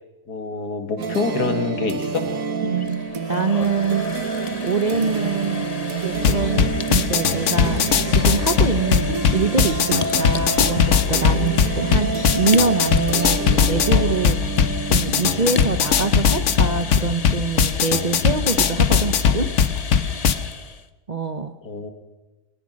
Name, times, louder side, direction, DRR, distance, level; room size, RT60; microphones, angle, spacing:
voice 1, 0.3-2.3 21.6-21.9, left 4 dB, 70° left, 7 dB, 2.4 m, -26 dB
sound 1, 1.0-17.6, right 5 dB, 60° right, 1.4 m, -29 dB
sound 2, 2.6-20.9, left 4 dB, 35° left, 0.6 m, -33 dB
voice 2, 2.6-5.7 6.0-14.4 14.8-19.5 21.1-21.5, right 4 dB, 40° right, 8 dB, 0.6 m, -25 dB
sound 3, 6.2-20.3, left 7 dB, 55° left, 1.2 m, -20 dB
22.5 x 20.0 x 6.4 m, 1.1 s
omnidirectional pair, 1.8 m